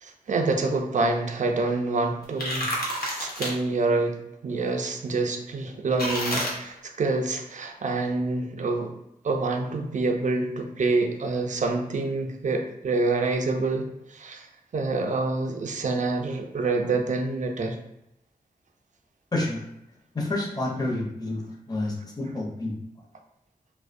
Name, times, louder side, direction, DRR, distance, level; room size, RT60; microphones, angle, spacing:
voice 1, 0.0-2.8 3.2-8.9 9.2-14.5 14.7-17.8, right 3 dB, 55° right, 4 dB, 0.4 m, -27 dB
sound 1, 2.2-3.5 6.0-6.5, equal, 80° left, 0.7 m, -29 dB
voice 2, 19.3-19.6 20.1-22.8, left 2 dB, 25° left, -3 dB, 0.6 m, -29 dB
2.5 x 2.1 x 2.5 m, 0.85 s
wide cardioid pair, 65°, 15 cm